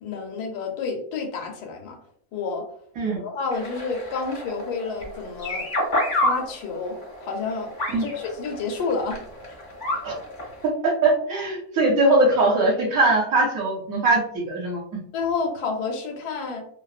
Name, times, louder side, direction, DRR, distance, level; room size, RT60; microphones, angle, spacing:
voice 1, 0.0-2.0 2.3-2.6 3.1-5.7 6.1-7.7 8.0-9.2 9.5-9.6 15.1-16.6, left 4 dB, 85° left, 3 dB, 1.2 m, -29 dB
sound 1, 3.5-10.7, left 1 dB, 50° left, 0.5 m, -30 dB
voice 2, 10.6-14.2 14.5-15.0, right 2 dB, 70° right, -3 dB, 1.1 m, -21 dB
2.8 x 2.0 x 2.3 m, 0.66 s
omnidirectional pair, 1.7 m